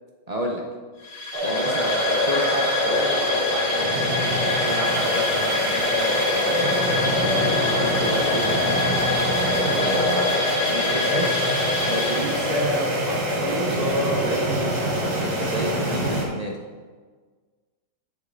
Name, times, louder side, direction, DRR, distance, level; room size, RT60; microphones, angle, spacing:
voice 1, 0.3-0.6 1.4-6.6 7.1-9.0 9.7-10.3 10.7-16.6, equal, 45° right, 0 dB, 0.5 m, -30 dB
sound 1, 1.0-12.8, left 2 dB, 85° left, 2.3 m, -27 dB
sound 2, 1.3-16.2, equal, 75° right, 1.7 m, -24 dB
7.6 x 6.5 x 3.8 m, 1.5 s
omnidirectional pair, 1.7 m